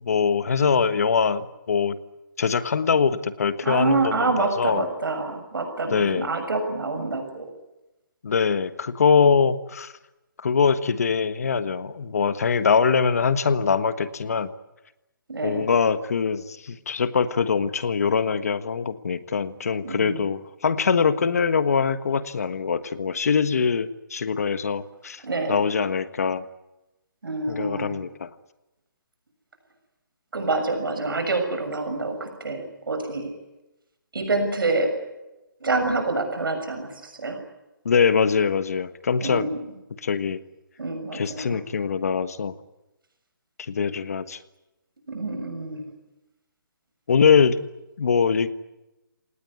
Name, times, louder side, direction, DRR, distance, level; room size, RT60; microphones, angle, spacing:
voice 1, 0.0-2.0 2.4-4.8 5.9-6.3 8.2-9.9 10.4-14.5 15.4-25.2 25.5-26.5 27.5-28.3 37.8-39.5 40.0-40.4 41.1-42.5 43.7-44.4 47.1-47.6 48.0-48.5, left 6 dB, 45° left, 13 dB, 1.5 m, -23 dB
voice 2, 3.6-7.5 15.3-15.7 19.8-20.2 25.2-25.6 27.2-28.0 30.3-33.3 34.1-34.9 35.6-37.4 39.2-39.6 40.8-41.6 45.1-45.9, right 3 dB, 80° right, 6 dB, 6.6 m, -27 dB
27.0 x 18.5 x 9.6 m, 0.98 s
hypercardioid pair, 175°, 11 cm